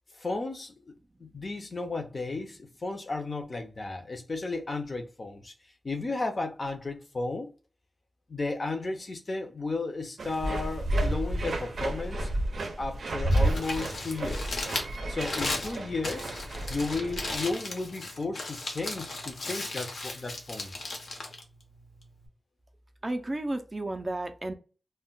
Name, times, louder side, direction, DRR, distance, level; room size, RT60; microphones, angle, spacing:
voice 1, 0.2-0.7 1.2-5.5 5.8-7.5 8.3-12.3 12.8-14.6 15.1-16.3 16.7-20.7, left 3 dB, 40° left, 0.5 m, -34 dB
sound 1, 10.2-17.5, right 1 dB, 85° right, 0.5 m, -31 dB
Crumpling crinkling, 13.1-22.3, left 2 dB, 80° left, 0.7 m, -37 dB
voice 2, 23.0-24.5, right 2 dB, 30° right, 0.3 m, -32 dB
2.2 x 2.1 x 3.7 m
wide cardioid pair, 125°, 0 cm